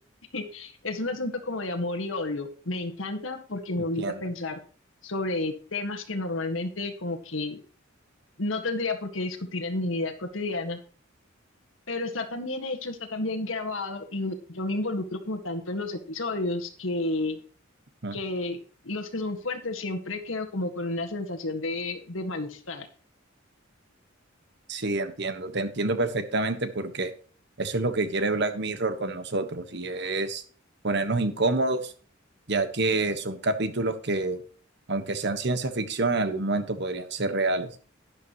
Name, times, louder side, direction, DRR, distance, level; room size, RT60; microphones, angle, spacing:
voice 1, 0.3-4.6 5.0-7.6 8.4-10.8 11.9-17.4 18.1-18.6 18.8-22.9, left 2 dB, 80° left, 5 dB, 1.8 m, -31 dB
voice 2, 24.7-27.1 27.6-30.4 30.8-31.9 32.5-34.4 34.9-37.7, right 2 dB, 60° right, 9 dB, 1.4 m, -27 dB
12.0 x 10.5 x 3.1 m, 0.42 s
head